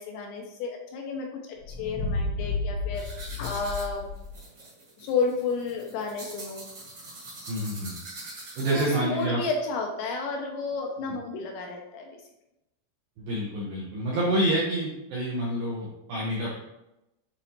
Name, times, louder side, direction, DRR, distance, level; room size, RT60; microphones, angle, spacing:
voice 1, 0.0-3.1 3.4-4.1 5.0-6.7 8.7-12.1, left 4 dB, 80° left, 1 dB, 2.7 m, -31 dB
sound 1, 1.6-4.4, left 3 dB, 60° left, 1.7 m, -32 dB
sound 2, 2.9-9.2, right 2 dB, 50° right, 1.6 m, -43 dB
voice 2, 7.5-8.0 8.6-9.4 13.2-16.6, right 1 dB, 80° right, -5 dB, 2.1 m, -28 dB
8.3 x 4.0 x 2.9 m, 0.91 s
omnidirectional pair, 5.6 m